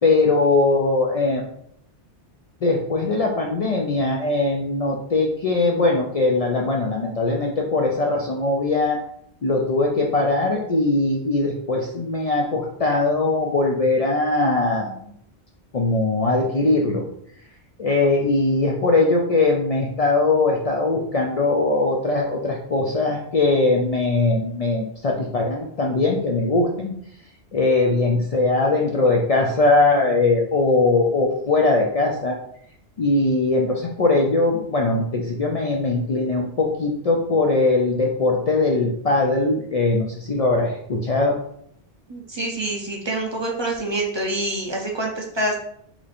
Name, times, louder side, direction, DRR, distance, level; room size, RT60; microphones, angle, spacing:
voice 1, 0.0-1.4 2.6-9.0 9.4-15.1 15.7-17.0 17.8-27.0 27.5-32.4 33.0-41.4, left 2 dB, 65° left, -1 dB, 0.3 m, -20 dB
voice 2, 42.1-45.6, right 1 dB, 35° right, 0 dB, 0.4 m, -26 dB
3.0 x 2.5 x 4.0 m, 0.68 s
omnidirectional pair, 1.2 m